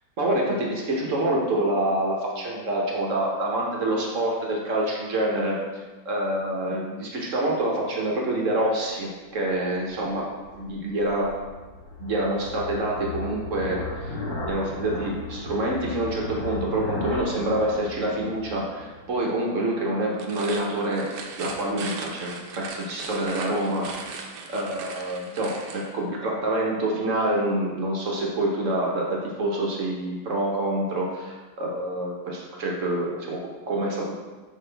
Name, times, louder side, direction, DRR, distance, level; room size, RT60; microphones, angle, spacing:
voice 1, 0.2-5.6 6.0-11.3 12.0-14.2 14.5-21.1 21.4-23.9 24.5-33.4 33.7-34.1, right 1 dB, 50° right, -2 dB, 1.2 m, -26 dB
sound 1, 9.6-19.2, left 2 dB, 60° left, 1.8 m, -36 dB
sound 2, 20.1-25.9, right 4 dB, 75° right, 1.3 m, -38 dB
5.8 x 5.3 x 3.4 m, 1.3 s
omnidirectional pair, 1.8 m